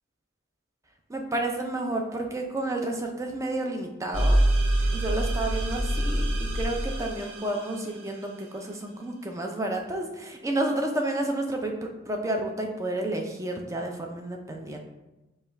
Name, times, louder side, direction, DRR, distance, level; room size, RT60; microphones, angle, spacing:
voice 1, 1.1-4.4 4.9-6.3 6.5-11.7 12.1-14.8, right 1 dB, 15° right, 2 dB, 0.4 m, -30 dB
sound 1, 4.1-7.7, right 1 dB, 70° right, 0.7 m, -25 dB
5.3 x 2.3 x 4.4 m, 1.0 s
head